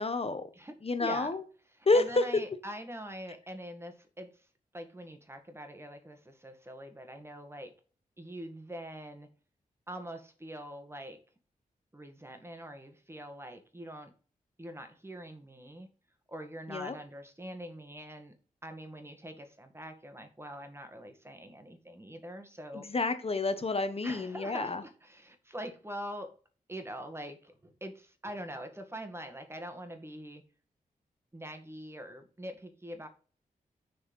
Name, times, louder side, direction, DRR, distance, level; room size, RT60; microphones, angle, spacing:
voice 1, 0.0-0.4 0.8-1.4 1.9-2.3 16.7-16.9 22.7-24.8, left 3 dB, 40° left, 9 dB, 1.1 m, -29 dB
voice 2, 1.0-1.3 1.9-4.5 4.7-7.7 8.2-9.3 9.9-11.2 11.9-14.1 14.6-15.9 16.3-18.3 18.6-22.9 24.0-26.3 26.7-30.4 31.3-33.1, equal, 15° right, 7 dB, 1.8 m, -44 dB
6.6 x 4.4 x 5.5 m, 0.39 s
cardioid pair, 65°, 15 cm